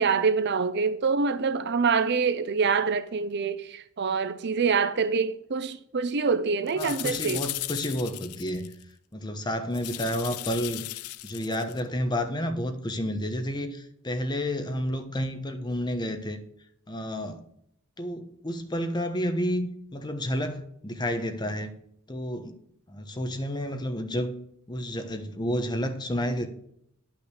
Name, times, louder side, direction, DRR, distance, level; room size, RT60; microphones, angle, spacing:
voice 1, 0.0-7.4, right 5 dB, 50° right, 0.6 m, -25 dB
sound 1, 6.7-8.8 9.7-11.8, left 17 dB, 85° left, 0.4 m, -36 dB
voice 2, 6.8-8.7 9.1-10.9 11.2-16.4 16.9-17.4 18.0-21.7 22.1-22.5 22.9-24.3 24.7-26.5, equal, 20° left, 1.1 m, -30 dB
10.5 x 6.0 x 6.3 m
head